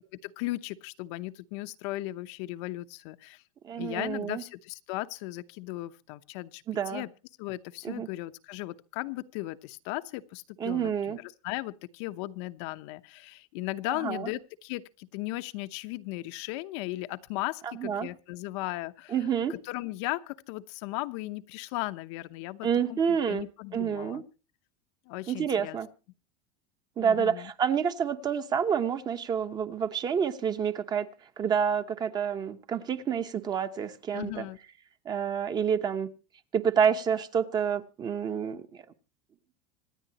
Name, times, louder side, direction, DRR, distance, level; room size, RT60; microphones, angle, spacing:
voice 1, 0.2-3.4 3.7-7.1 7.4-19.2 19.5-24.2 25.1-25.8 27.0-27.5 34.1-34.6, left 18 dB, 55° left, 0.9 m, -37 dB
voice 2, 3.6-4.4 6.7-7.0 7.8-8.1 10.6-11.2 14.0-14.3 17.6-18.1 19.1-19.5 22.6-23.5 23.7-24.2 25.3-25.9 27.0-31.1 31.4-34.5 35.0-36.1 36.5-38.8, right 7 dB, 25° right, 1.0 m, -28 dB
26.0 x 9.5 x 2.9 m
supercardioid pair, 165°, 18 cm